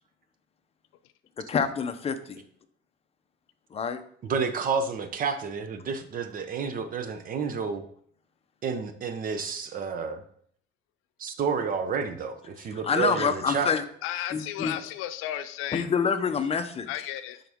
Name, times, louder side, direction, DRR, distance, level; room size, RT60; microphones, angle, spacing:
voice 1, 1.5-2.4 3.7-4.0 12.8-13.8 14.3-14.8 15.7-16.9, left 6 dB, 30° left, 8 dB, 0.7 m, -26 dB
voice 2, 4.2-7.8 8.6-10.2 11.2-13.7, right 5 dB, 40° right, 9 dB, 0.8 m, -30 dB
voice 3, 14.0-15.9 16.9-17.4, left 12 dB, 80° left, 10 dB, 0.6 m, -34 dB
10.5 x 4.0 x 3.6 m, 0.62 s
cardioid pair, 130°, 21 cm